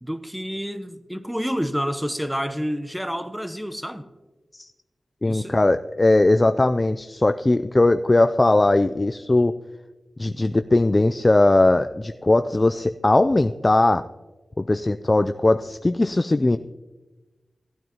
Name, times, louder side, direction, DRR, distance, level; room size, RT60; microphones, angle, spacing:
voice 1, 0.0-4.1 5.2-5.6, equal, 5° right, 0.8 m, -29 dB
voice 2, 5.2-9.5 10.2-14.0 14.6-16.6, left 2 dB, 35° left, 0.3 m, -19 dB
16.0 x 9.2 x 2.9 m
cardioid pair, 45°, 0 cm